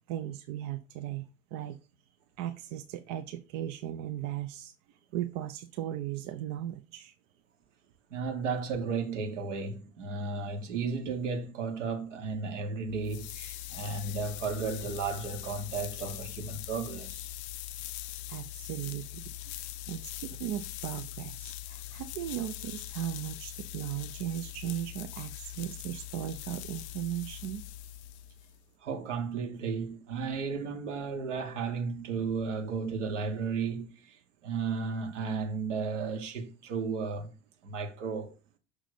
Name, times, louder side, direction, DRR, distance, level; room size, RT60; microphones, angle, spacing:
voice 1, 0.1-1.8 2.4-4.7 5.1-7.1 18.3-19.3 19.6-27.6, right 12 dB, 50° right, 0.6 m, -37 dB
voice 2, 8.1-17.3 28.8-37.3 37.6-38.3, right 4 dB, 70° right, 1.5 m, -34 dB
sound 1, 12.9-28.6, left 13 dB, 60° left, 0.5 m, -42 dB
6.5 x 3.7 x 4.9 m
figure-of-eight pair, 70°, 38 cm